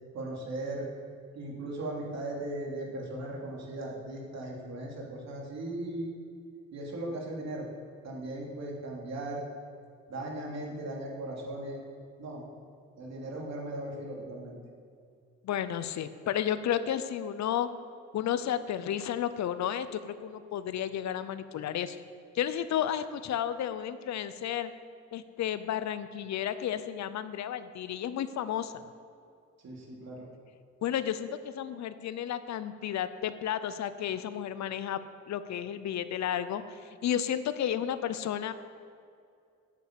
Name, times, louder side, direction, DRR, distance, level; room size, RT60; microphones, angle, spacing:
voice 1, 0.1-0.9 1.3-6.1 6.7-7.6 8.0-9.4 10.1-11.8 12.2-12.4 13.0-14.6 29.6-30.3, right 1 dB, 60° right, -2 dB, 3.1 m, -38 dB
voice 2, 15.4-17.7 18.1-22.0 22.3-24.7 25.1-28.7 30.8-35.0 35.3-38.5, left 10 dB, 65° left, 13 dB, 0.7 m, -32 dB
9.3 x 8.4 x 8.2 m, 2.3 s
cardioid pair, 90°, 30 cm